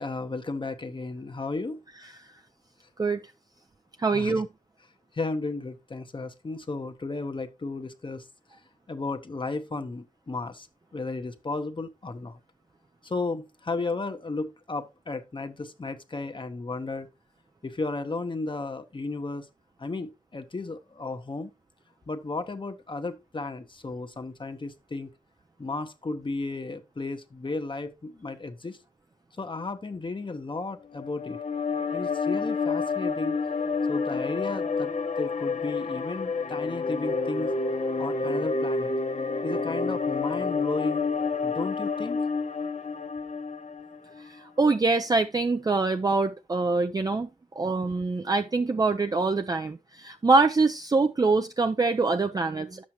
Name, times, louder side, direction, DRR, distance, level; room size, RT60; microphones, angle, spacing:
voice 1, 0.0-1.8 4.1-4.4 5.1-8.2 8.9-10.7 10.9-12.4 13.0-17.1 17.6-19.5 19.8-21.5 22.1-25.1 25.6-28.8 29.4-31.4 31.9-33.4 33.9-34.9 35.2-37.6 38.0-38.9 39.4-41.1 41.4-42.2, left 3 dB, 35° left, 0.8 m, -34 dB
voice 2, 4.0-4.5 44.2-47.3 47.6-52.8, right 3 dB, 30° right, 0.5 m, -24 dB
sound 1, 30.9-44.3, left 4 dB, 55° left, 1.1 m, -29 dB
10.0 x 7.4 x 2.9 m
wide cardioid pair, 105°, 14 cm